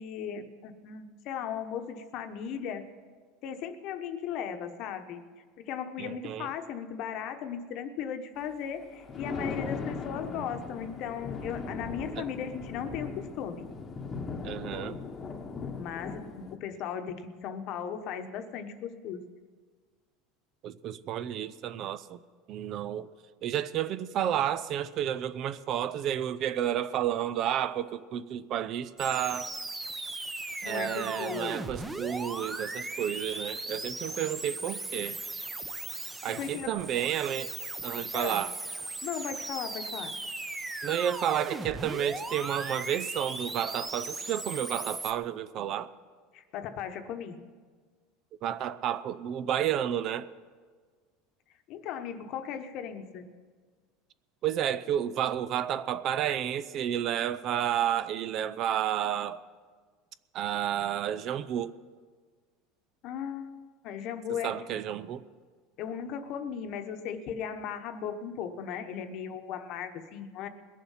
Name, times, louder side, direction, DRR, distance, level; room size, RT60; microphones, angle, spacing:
voice 1, 0.0-2.9 3.4-5.2 5.6-13.7 15.7-19.2 30.6-31.6 36.3-36.7 38.1-38.4 39.0-40.1 46.3-47.4 51.7-53.3 63.0-63.5 63.8-64.5 65.8-70.5, left 8 dB, 55° left, 8 dB, 1.0 m, -37 dB
voice 2, 6.0-6.5 12.2-12.3 14.4-15.0 20.6-22.2 22.5-23.1 23.4-29.5 30.6-35.2 36.2-37.5 37.8-38.5 40.8-45.9 48.4-50.3 54.4-59.4 60.3-61.8 64.3-65.2, right 10 dB, 45° right, 15 dB, 0.5 m, -31 dB
Thunder, 8.8-16.6, left 4 dB, 25° left, 1.1 m, -38 dB
sound 1, 29.0-45.1, right 2 dB, 10° right, 0.8 m, -38 dB
21.0 x 7.3 x 5.7 m, 1.5 s
supercardioid pair, 135°, 0 cm